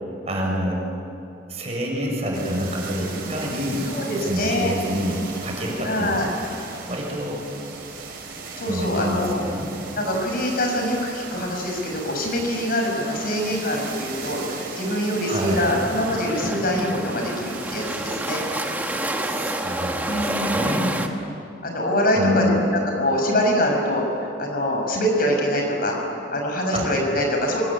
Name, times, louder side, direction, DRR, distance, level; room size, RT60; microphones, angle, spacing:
voice 1, 0.2-0.8 1.5-3.9 4.2-6.3 6.9-7.4 8.7-9.7 15.3-15.8 19.2-21.1 22.2-22.5 26.7-26.9, equal, 35° right, -1 dB, 6.6 m, -27 dB
sound 1, 2.3-20.4, right 4 dB, 55° right, 5.2 m, -37 dB
voice 2, 3.9-4.7 5.8-6.3 8.6-9.4 10.0-18.4 20.1-20.9 21.6-22.5 22.8-26.0 26.3-27.6, left 1 dB, 50° left, 1 dB, 6.0 m, -24 dB
sound 2, 15.5-21.1, right 1 dB, 10° right, 1.6 m, -28 dB
25.0 x 22.5 x 9.9 m, 2.7 s
head